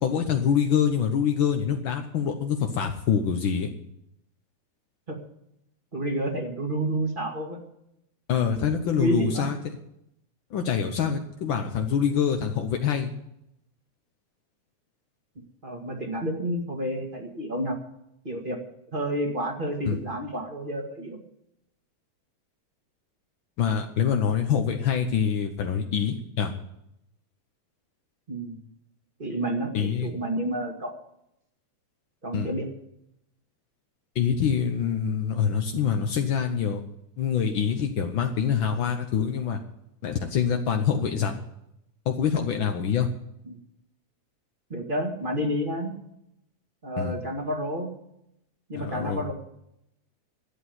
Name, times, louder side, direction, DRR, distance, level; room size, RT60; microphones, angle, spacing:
voice 1, 0.0-3.7 8.3-9.6 10.5-13.1 19.8-20.0 23.6-26.5 29.7-30.1 32.3-32.5 34.1-36.8 37.2-39.6 40.0-41.4 42.1-43.1 47.0-47.1 48.7-49.2, left 7 dB, 70° left, 4 dB, 1.1 m, -25 dB
voice 2, 5.9-7.6 8.9-9.5 15.6-17.8 18.2-18.6 18.9-21.2 28.3-28.6 29.2-31.0 32.2-32.7 43.5-43.6 44.7-45.9 46.8-47.9 48.7-49.3, right 1 dB, 20° right, 3 dB, 1.8 m, -30 dB
12.5 x 8.5 x 9.5 m, 0.80 s
omnidirectional pair, 3.5 m